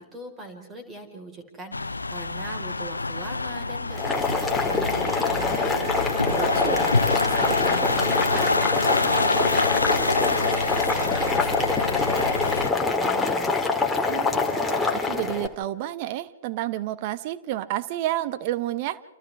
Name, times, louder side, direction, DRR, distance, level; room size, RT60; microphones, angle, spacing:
voice 1, 0.0-13.6, right 2 dB, 20° right, 4 dB, 4.6 m, -40 dB
sound 1, 1.7-12.7, left 3 dB, 85° left, 0.8 m, -26 dB
Boiling, 3.9-15.5, left 4 dB, 5° left, 2.4 m, -25 dB
voice 2, 6.3-6.8 7.4-7.6 14.1-19.0, right 14 dB, 45° right, 14 dB, 1.0 m, -30 dB
29.5 x 28.0 x 3.6 m, 1.1 s
figure-of-eight pair, 115°, 0 cm